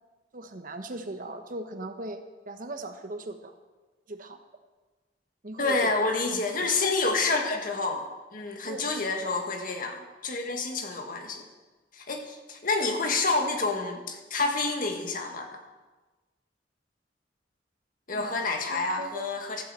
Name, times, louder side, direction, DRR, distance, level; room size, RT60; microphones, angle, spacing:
voice 1, 0.3-2.2 2.5-3.5 4.1-4.4 5.4-5.8 6.3-6.7 8.6-8.9 18.1-18.4 18.7-19.3, right 2 dB, 50° right, 7 dB, 1.1 m, -39 dB
voice 2, 5.6-11.4 11.9-15.5 18.1-19.6, left 3 dB, 50° left, 3 dB, 1.8 m, -28 dB
13.5 x 8.1 x 7.7 m, 1.3 s
head